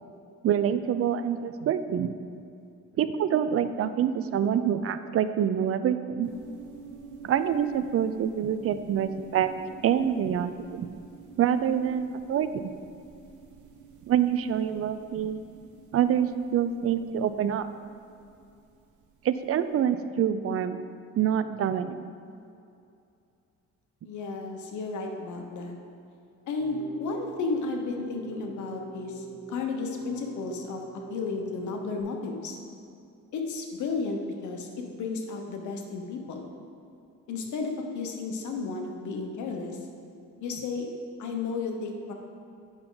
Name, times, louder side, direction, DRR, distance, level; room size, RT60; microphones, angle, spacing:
voice 1, 0.4-2.1 3.0-6.3 7.2-9.5 9.8-10.9 11.4-12.7 14.1-15.4 15.9-17.7 19.2-20.8 21.2-22.0, right 9 dB, 50° right, 11 dB, 0.5 m, -26 dB
sound 1, 6.2-19.6, right 6 dB, 75° right, 1.0 m, -49 dB
voice 2, 24.0-25.8 26.5-32.6 33.3-36.4 37.3-39.8 40.4-40.9 41.2-42.1, left 4 dB, 75° left, 3 dB, 1.1 m, -33 dB
Keyboard (musical), 26.6-32.0, right 5 dB, 5° left, 1.3 m, -45 dB
8.8 x 5.9 x 3.9 m, 2.6 s
cardioid pair, 90°, 30 cm